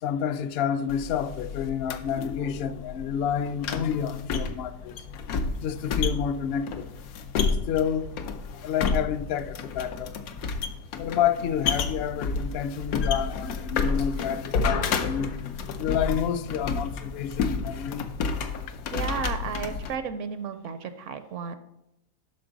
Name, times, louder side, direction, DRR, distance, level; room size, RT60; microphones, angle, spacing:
voice 1, 0.0-5.0 5.6-6.9 7.7-8.2 8.6-10.1 11.0-15.3 15.8-18.1 18.7-18.8, left 8 dB, 65° left, 0.6 m, -29 dB
sound 1, 0.9-20.0, left 5 dB, 90° left, 1.2 m, -31 dB
voice 2, 18.9-21.6, right 6 dB, 70° right, 0.9 m, -33 dB
12.0 x 4.4 x 3.9 m
omnidirectional pair, 1.5 m